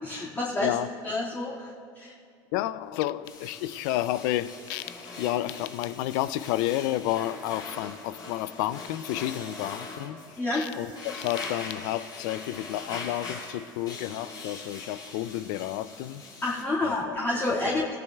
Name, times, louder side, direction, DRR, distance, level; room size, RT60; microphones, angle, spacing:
voice 1, 0.0-0.7 1.0-1.7 1.9-2.1 10.4-10.7 16.4-17.8, left 2 dB, 20° left, -6 dB, 2.0 m, -28 dB
voice 2, 2.5-10.2 10.5-16.2 16.8-17.2 17.6-17.9, left 14 dB, 80° left, 16 dB, 0.4 m, -31 dB
sound 1, 3.2-16.6, left 3 dB, 40° left, 3.6 m, -42 dB
18.0 x 17.0 x 2.3 m, 2.3 s
supercardioid pair, 95°, 11 cm